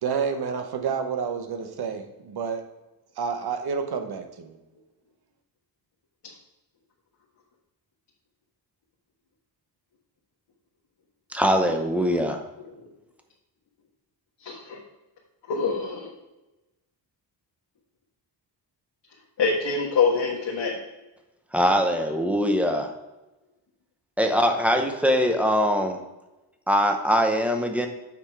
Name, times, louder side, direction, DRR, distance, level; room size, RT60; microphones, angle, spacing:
voice 1, 0.0-2.6 3.2-4.6, right 6 dB, 60° right, 6 dB, 0.9 m, -29 dB
voice 2, 11.3-12.4 21.5-22.9 24.2-26.0 26.7-27.9, equal, 5° right, 5 dB, 0.7 m, -22 dB
voice 3, 14.4-14.8 15.5-16.1 19.4-20.7, left 5 dB, 65° left, -4 dB, 1.5 m, -25 dB
7.3 x 5.8 x 4.6 m, 1.0 s
wide cardioid pair, 180°, 44 cm